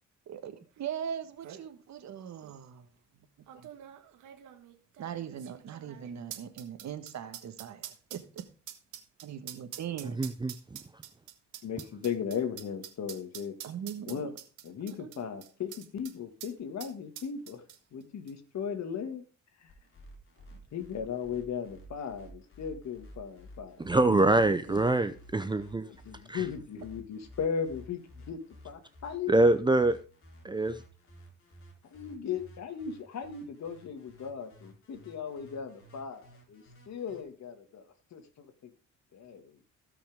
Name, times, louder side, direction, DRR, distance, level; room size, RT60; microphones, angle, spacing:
voice 1, 0.3-2.9 3.5-3.7 5.0-8.4 9.2-10.2 13.6-14.3 15.0-15.2 20.4-20.6 24.1-24.8, right 9 dB, 65° right, 10 dB, 1.5 m, -40 dB
sound 1, 0.9-1.0 1.2-1.6 2.4-2.5 3.5-16.1 16.4-16.5 16.8-18.0 18.3-18.4, right 11 dB, 85° right, 1.6 m, -46 dB
voice 2, 10.2-10.5 23.8-25.9 26.3-26.4 29.3-30.0 30.4-30.8, right 2 dB, 15° right, 12 dB, 0.6 m, -24 dB
voice 3, 11.6-13.5 14.1-14.3 14.6-17.6 17.9-19.2 19.6-19.7 20.7-23.9 26.0-28.4 28.6-29.3 31.9-37.8 38.1-38.7 39.1-39.6, left 7 dB, 65° left, 7 dB, 2.0 m, -37 dB
sound 2, 19.7-37.2, equal, 45° left, 3.8 m, -53 dB
17.0 x 5.9 x 3.6 m, 0.36 s
cardioid pair, 90°, 30 cm